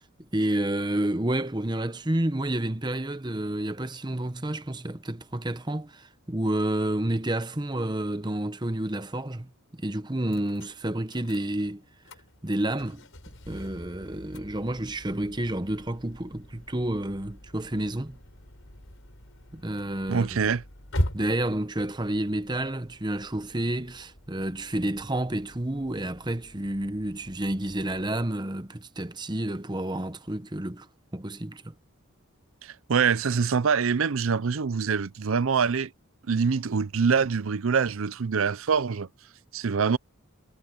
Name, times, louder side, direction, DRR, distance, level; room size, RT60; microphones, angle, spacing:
voice 1, 0.3-9.5 9.8-11.8 12.4-13.0 13.5-18.2 19.5-20.4 21.1-30.9 31.1-31.7, right 1 dB, 20° right, 0.9 m, -30 dB
sound 1, 10.3-28.2, equal, 65° left, 5.2 m, -41 dB
voice 2, 20.1-20.6 32.6-35.9 36.3-39.1 39.5-40.0, right 5 dB, 70° right, 0.6 m, -25 dB
head